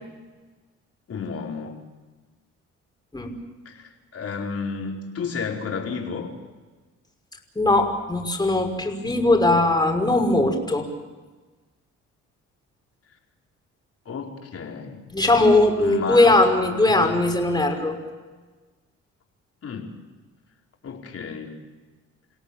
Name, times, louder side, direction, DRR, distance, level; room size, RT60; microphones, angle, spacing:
voice 1, 1.1-1.8 3.6-6.3 14.0-15.0 15.8-16.3 16.9-17.1 19.6-19.9 20.8-21.6, left 5 dB, 50° left, 1 dB, 4.9 m, -32 dB
voice 2, 7.6-10.9 15.1-18.0, left 2 dB, 15° left, 3 dB, 5.8 m, -19 dB
28.5 x 17.5 x 8.8 m, 1.3 s
cardioid pair, 90°, 30 cm